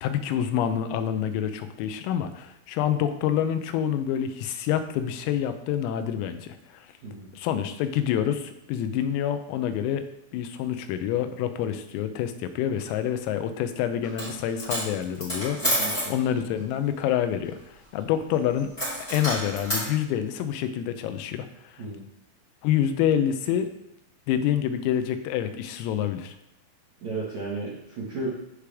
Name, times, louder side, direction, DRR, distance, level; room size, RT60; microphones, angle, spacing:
voice 1, 0.0-6.9 7.3-10.0 10.3-15.6 16.1-18.7 19.1-21.8 22.6-23.7 24.3-26.4, left 9 dB, 90° left, 9 dB, 3.4 m, -27 dB
Coin (dropping), 14.0-14.3 14.6-16.1 18.8-19.9, equal, 10° left, 2.5 m, -28 dB
voice 2, 15.6-16.1 21.8-22.0 27.0-28.3, right 3 dB, 65° right, -7 dB, 1.8 m, -34 dB
14.5 x 5.0 x 3.5 m, 0.81 s
omnidirectional pair, 5.9 m